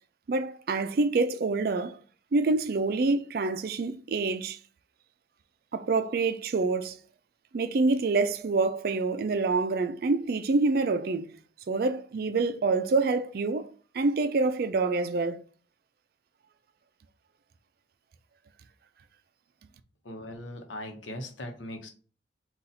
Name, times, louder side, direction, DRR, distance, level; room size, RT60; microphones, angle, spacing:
voice 1, 0.3-2.0 2.3-4.6 5.7-7.0 7.5-11.3 11.7-15.4, right 3 dB, 50° right, 0.4 m, -26 dB
voice 2, 20.0-21.9, left 1 dB, 80° left, 0.9 m, -39 dB
4.0 x 2.4 x 4.1 m
head